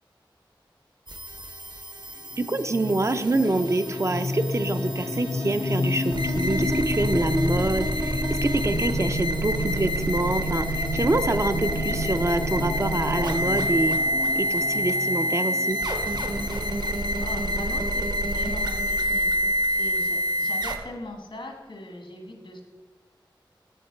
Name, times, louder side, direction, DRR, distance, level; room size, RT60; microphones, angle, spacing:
sound 1, 1.1-20.8, equal, 55° right, 0.8 m, -27 dB
sound 2, 2.3-17.9, left 2 dB, 35° left, 0.4 m, -32 dB
voice 1, 2.4-14.0 14.4-15.8, right 2 dB, 35° right, 9 dB, 0.4 m, -26 dB
voice 2, 17.2-19.3 19.7-22.6, left 1 dB, 80° left, 2 dB, 1.5 m, -40 dB
7.9 x 6.6 x 4.3 m, 1.3 s
wide cardioid pair, 70°, 9 cm